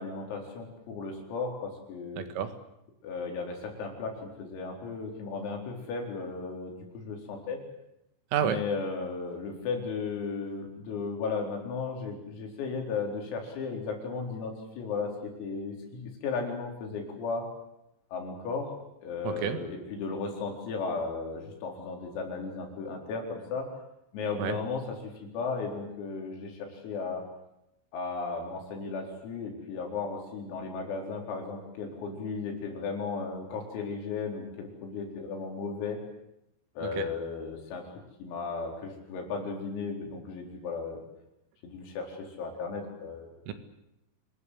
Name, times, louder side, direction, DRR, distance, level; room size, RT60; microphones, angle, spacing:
voice 1, 0.0-2.3 3.0-7.6 8.4-17.5 18.1-18.7 19.0-23.7 24.1-27.3 27.9-36.0 36.8-37.9 38.2-41.0 41.6-43.4, left 4 dB, 85° left, 2 dB, 7.1 m, -35 dB
voice 2, 2.2-2.5 8.3-8.6 19.2-19.6 24.4-24.5 36.8-37.1 43.5-43.6, right 8 dB, 75° right, 8 dB, 4.4 m, -30 dB
27.5 x 20.5 x 8.4 m, 0.85 s
omnidirectional pair, 5.9 m